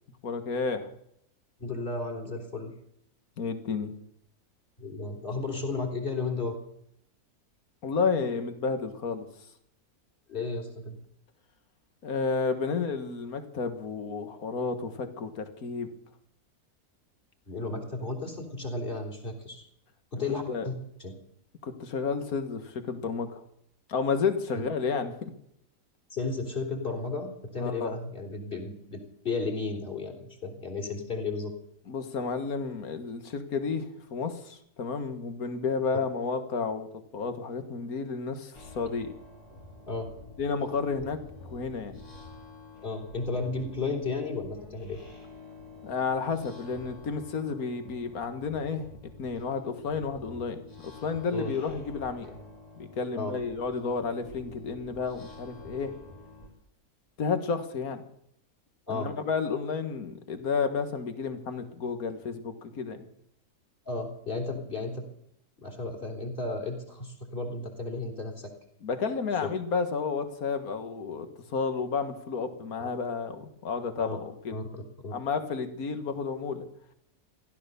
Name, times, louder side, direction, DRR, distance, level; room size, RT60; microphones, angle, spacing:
voice 1, 0.2-0.9 3.4-3.9 7.8-9.3 12.0-15.9 20.5-20.7 21.6-23.4 23.9-25.3 27.6-28.0 31.9-36.9 37.1-39.1 40.4-41.2 41.5-42.0 45.8-48.9 49.2-52.3 52.8-55.9 57.2-58.0 58.9-63.1 68.8-74.6 75.1-76.7, left 5 dB, 70° left, 8 dB, 2.0 m, -31 dB
voice 2, 1.6-2.7 4.8-6.6 10.3-11.0 17.5-19.7 20.1-20.7 21.0-21.1 24.5-24.7 26.1-31.5 39.9-40.1 42.8-45.0 51.3-51.5 53.1-53.3 58.9-59.1 63.9-65.0 65.6-68.5 69.4-69.5 72.8-72.9 74.0-74.2 74.5-75.1, left 3 dB, 35° left, 2 dB, 3.6 m, -33 dB
sound 1, 38.5-56.5, left 2 dB, 85° left, 5.0 m, -48 dB
16.0 x 12.5 x 6.9 m, 0.73 s
omnidirectional pair, 1.6 m